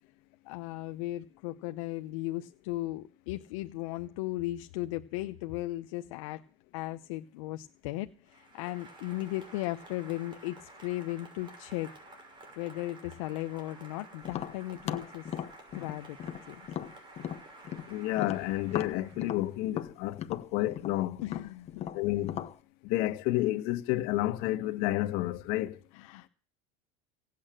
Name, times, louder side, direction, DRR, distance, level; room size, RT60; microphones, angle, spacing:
voice 1, 0.4-6.4 6.7-11.9 12.6-15.3 15.7-16.2 16.5-16.6 21.2-21.9 25.9-26.3, left 17 dB, 90° left, 0.8 m, -36 dB
Applause, 8.3-19.8, right 2 dB, 30° right, 6.1 m, -52 dB
Tap, 14.2-17.9 18.2-22.5, left 10 dB, 40° left, 1.2 m, -37 dB
voice 2, 17.9-21.2 21.9-22.4 22.8-25.8, left 16 dB, 70° left, 1.5 m, -30 dB
17.5 x 8.6 x 7.6 m
supercardioid pair, 125°, 16 cm